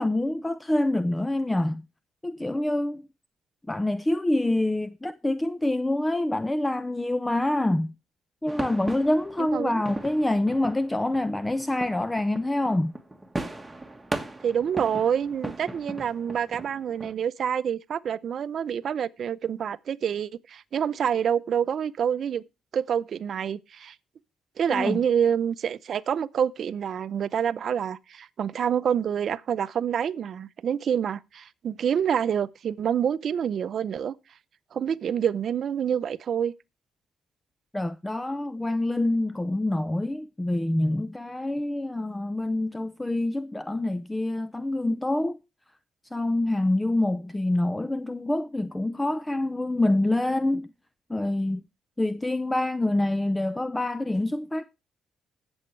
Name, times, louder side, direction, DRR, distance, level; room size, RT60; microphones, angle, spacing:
voice 1, 0.0-1.8 2.2-3.0 3.7-7.9 8.4-12.9 24.7-25.0 37.7-45.4 46.1-50.7 51.1-51.6 52.0-54.6, left 1 dB, 10° left, 0.5 m, -26 dB
sound 1, 8.5-17.1, right 2 dB, 10° right, 1.5 m, -38 dB
voice 2, 9.4-9.8 14.4-22.4 22.7-24.0 24.6-34.1 34.7-36.5, right 8 dB, 60° right, 0.6 m, -27 dB
20.5 x 7.2 x 3.2 m
cardioid pair, 90°, 0 cm